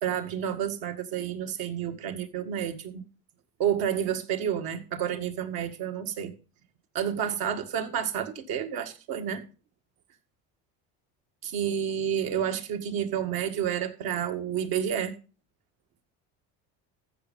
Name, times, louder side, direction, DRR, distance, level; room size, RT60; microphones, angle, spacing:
voice 1, 0.0-3.0 3.6-6.3 6.9-9.4 11.4-15.2, right 9 dB, 70° right, 2.0 m, -30 dB
14.5 x 6.5 x 5.3 m
cardioid pair, 110°, 37 cm